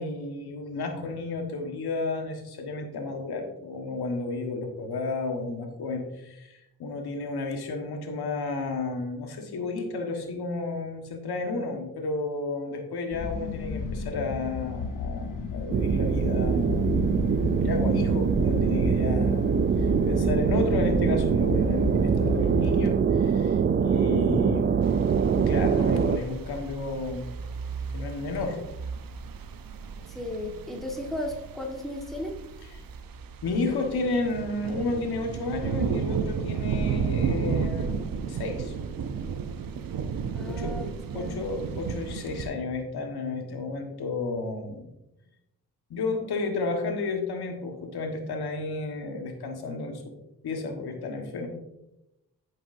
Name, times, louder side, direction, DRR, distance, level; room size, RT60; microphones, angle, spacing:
voice 1, 0.0-17.0 17.4-24.8 25.3-27.3 27.9-28.6 33.4-38.7 40.5-44.9 45.9-50.0 50.4-51.5, left 3 dB, 75° left, 3 dB, 1.5 m, -32 dB
sound 1, 13.1-22.9, left 4 dB, 55° left, 1.0 m, -32 dB
sound 2, 15.7-26.2, right 7 dB, 30° right, 0.4 m, -23 dB
sound 3, 24.8-42.5, right 6 dB, 60° right, 0.7 m, -33 dB
voice 2, 30.1-32.4 40.3-41.5, left 1 dB, ahead, 0 dB, 1.5 m, -35 dB
8.5 x 6.4 x 2.6 m, 0.90 s
cardioid pair, 55°, 39 cm